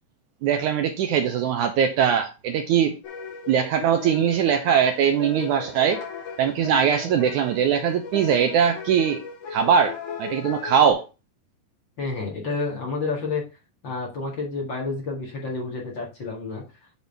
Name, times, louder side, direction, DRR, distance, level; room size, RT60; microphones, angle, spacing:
voice 1, 0.4-3.0 3.5-6.0 6.4-11.1, right 8 dB, 75° right, 6 dB, 1.9 m, -21 dB
sound 1, 3.0-10.9, left 5 dB, 60° left, 3.9 m, -37 dB
voice 2, 12.0-13.4 13.8-16.6, left 3 dB, 40° left, -2 dB, 2.1 m, -29 dB
8.7 x 4.1 x 5.3 m, 0.29 s
omnidirectional pair, 4.1 m